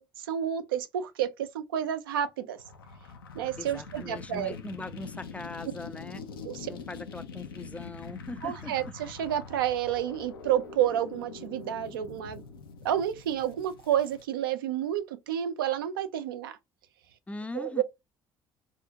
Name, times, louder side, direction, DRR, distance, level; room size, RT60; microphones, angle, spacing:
voice 1, 0.0-2.6 3.4-4.5 6.4-6.7 8.4-12.4 12.8-16.6 17.5-17.8, right 10 dB, 75° right, 0.4 m, -30 dB
sound 1, 2.6-14.2, left 5 dB, 80° left, 0.4 m, -44 dB
voice 2, 3.6-6.2 6.7-8.8 17.3-17.8, left 2 dB, 10° left, 0.3 m, -40 dB
2.4 x 2.0 x 2.7 m
figure-of-eight pair, 50°, 12 cm